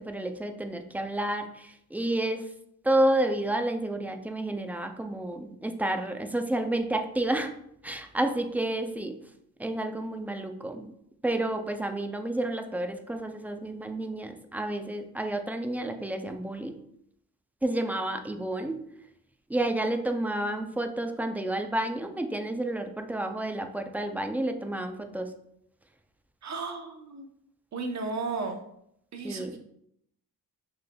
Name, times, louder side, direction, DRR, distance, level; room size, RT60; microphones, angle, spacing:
voice 1, 0.0-2.5 2.8-7.5 7.8-9.2 9.6-10.9 11.2-16.7 17.6-18.8 19.5-25.3 29.2-29.6, right 1 dB, 5° right, 6 dB, 0.3 m, -30 dB
voice 2, 26.4-27.2 27.7-28.6 29.1-29.5, right 3 dB, 50° right, 5 dB, 0.8 m, -34 dB
5.9 x 3.3 x 2.2 m, 0.73 s
cardioid pair, 95°, 36 cm